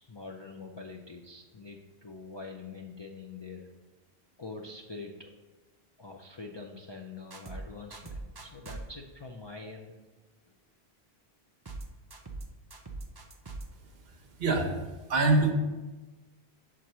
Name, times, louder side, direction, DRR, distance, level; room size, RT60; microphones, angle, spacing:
voice 1, 0.0-3.7 4.4-5.3 6.0-10.0 10.5-10.6, left 3 dB, 40° left, 0 dB, 0.4 m, -44 dB
sound 1, 7.3-7.6 7.9-8.8 11.7-11.9 12.1-12.5 12.7-13.7, right 3 dB, 30° right, 0.5 m, -41 dB
voice 2, 14.1-14.8 15.1-15.5, right 3 dB, 70° right, 3 dB, 1.1 m, -25 dB
6.1 x 4.6 x 5.5 m, 1.2 s
omnidirectional pair, 1.1 m